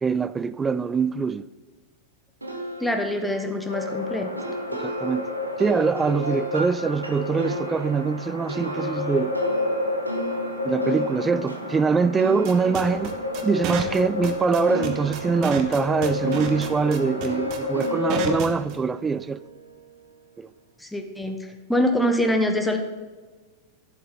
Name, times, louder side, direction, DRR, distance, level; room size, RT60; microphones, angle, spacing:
voice 1, 0.0-1.4 4.8-5.3 5.6-9.4 10.6-13.1 13.4-19.4 20.4-20.5, right 5 dB, 15° right, 0.3 m, -23 dB
sound 1, 2.4-14.4 14.7-19.9, right 2 dB, 85° right, 1.3 m, -36 dB
voice 2, 2.8-4.3 20.8-22.8, left 1 dB, 5° left, 1.1 m, -24 dB
sound 2, 3.7-18.4, left 3 dB, 90° left, 1.0 m, -30 dB
sound 3, 12.4-18.8, right 8 dB, 40° right, 1.1 m, -31 dB
11.0 x 7.7 x 3.8 m
figure-of-eight pair, 90°, 0 cm